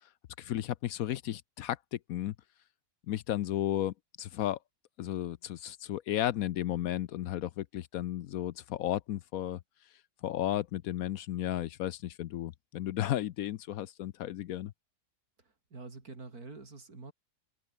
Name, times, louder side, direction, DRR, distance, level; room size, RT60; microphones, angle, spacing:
voice 1, 0.4-2.3 3.1-4.6 5.0-9.6 10.2-14.7, left 12 dB, 70° left, 1.0 m, -34 dB
voice 2, 15.7-17.1, right 3 dB, 70° right, 4.2 m, -46 dB
omnidirectional pair, 1.7 m